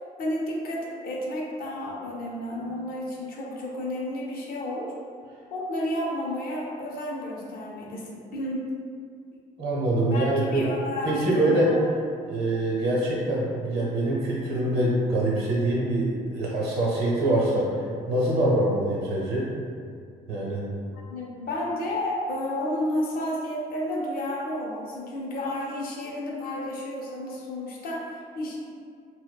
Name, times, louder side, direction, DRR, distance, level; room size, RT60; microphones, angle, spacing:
voice 1, 0.2-4.9 5.5-8.7 10.0-10.3 10.5-11.6 18.5-18.6 21.1-28.6, left 1 dB, 60° left, -3 dB, 0.5 m, -31 dB
voice 2, 9.6-10.6 11.0-11.7 12.3-17.8 18.1-19.5 20.3-20.6, right 1 dB, 70° right, -5 dB, 0.8 m, -24 dB
2.6 x 2.1 x 2.2 m, 2.2 s
cardioid pair, 110°, 17 cm